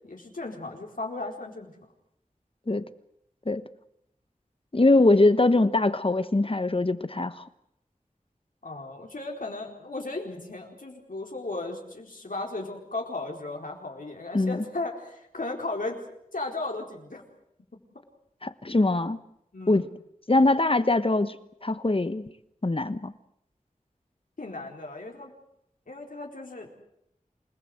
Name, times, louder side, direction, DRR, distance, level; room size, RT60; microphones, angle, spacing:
voice 1, 0.0-1.7 8.6-16.0 16.3-17.2 19.5-19.9 24.4-25.3 25.9-26.8, left 2 dB, 80° left, 1 dB, 4.4 m, -35 dB
voice 2, 4.7-7.4 14.3-14.6 18.4-19.2 19.7-19.9 20.3-21.4 21.6-22.2 22.6-23.1, left 2 dB, 40° left, 13 dB, 1.3 m, -22 dB
28.5 x 19.0 x 8.0 m, 0.76 s
wide cardioid pair, 60°, 14 cm